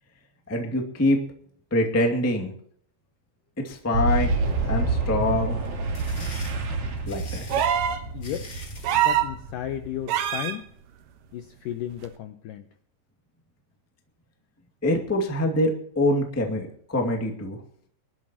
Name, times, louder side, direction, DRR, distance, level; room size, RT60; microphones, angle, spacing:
voice 1, 0.5-1.2 1.7-2.5 3.6-4.3 4.6-5.7 7.1-7.4 14.8-17.6, left 1 dB, 10° left, 2 dB, 0.7 m, -25 dB
Boom, 3.9-10.5, right 3 dB, 50° right, 3.3 m, -28 dB
sound 1, 5.6-8.9, left 3 dB, 35° left, 1.8 m, -44 dB
sound 2, 7.5-8.0 8.8-9.3 10.1-10.6 12.0-12.1, right 10 dB, 70° right, 2.3 m, -23 dB
voice 2, 8.1-8.5 8.9-10.7 11.3-12.7, left 11 dB, 85° left, 8 dB, 1.9 m, -34 dB
23.5 x 12.0 x 3.0 m, 0.64 s
omnidirectional pair, 4.7 m